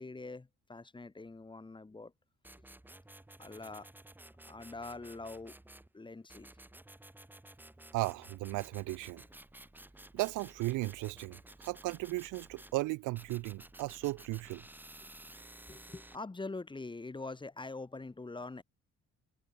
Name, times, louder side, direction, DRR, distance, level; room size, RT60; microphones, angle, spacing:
voice 1, 0.0-2.1 3.4-3.9 4.4-5.5 5.9-6.5 15.7-18.6, left 3 dB, 15° left, 1.1 m, -44 dB
sound 1, 2.4-5.9 6.3-12.7 13.2-16.2, right 1 dB, 5° right, 1.0 m, -54 dB
voice 2, 7.9-9.2 10.1-14.6, right 20 dB, 90° right, 0.5 m, -36 dB
cardioid pair, 90°, 30 cm